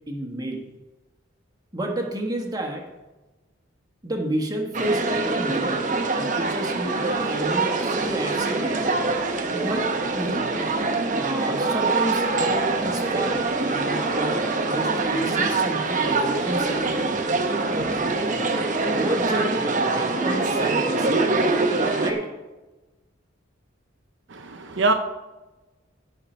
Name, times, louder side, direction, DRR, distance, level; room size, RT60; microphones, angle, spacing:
voice 1, 0.1-0.6 1.7-2.9 4.0-5.8 6.1-8.8 9.5-10.5 11.1-16.8 17.7-17.9 18.8-21.3 22.0-22.3, right 1 dB, 20° right, 1 dB, 1.5 m, -30 dB
sound 1, 4.7-22.1, right 3 dB, 40° right, 1.0 m, -24 dB
voice 2, 24.3-24.9, right 3 dB, 65° right, 6 dB, 0.7 m, -23 dB
17.0 x 5.8 x 4.5 m, 1.1 s
head